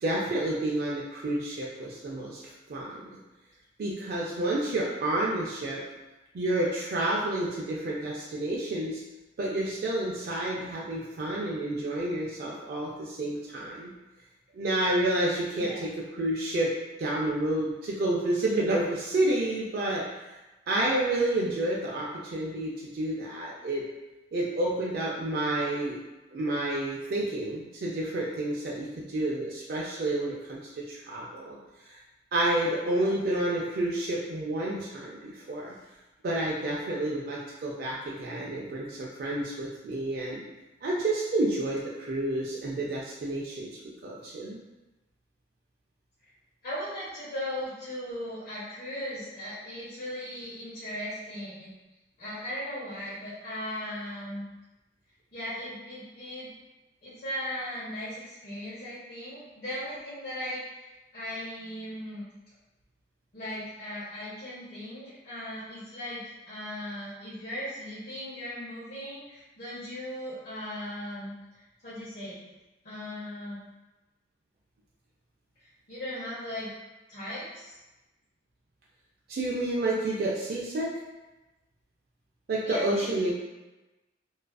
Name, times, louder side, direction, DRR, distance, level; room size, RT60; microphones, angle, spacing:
voice 1, 0.0-2.4 2.7-3.2 3.8-5.8 6.3-9.0 9.4-13.9 14.5-16.7 17.0-20.4 20.7-23.8 24.3-26.0 26.3-31.6 31.8-32.0 32.3-35.7 36.2-40.4 40.8-44.6 79.3-80.9 82.5-83.3, right 1 dB, 55° right, -4 dB, 0.3 m, -30 dB
voice 2, 15.5-15.8 32.9-33.2 46.6-51.7 52.2-54.4 55.3-56.5 57.0-62.2 63.3-71.3 71.8-72.4 72.8-73.6 75.6-76.7 77.1-77.8 82.6-83.3, equal, 55° left, -11 dB, 0.7 m, -38 dB
2.4 x 2.3 x 2.2 m, 1.1 s
head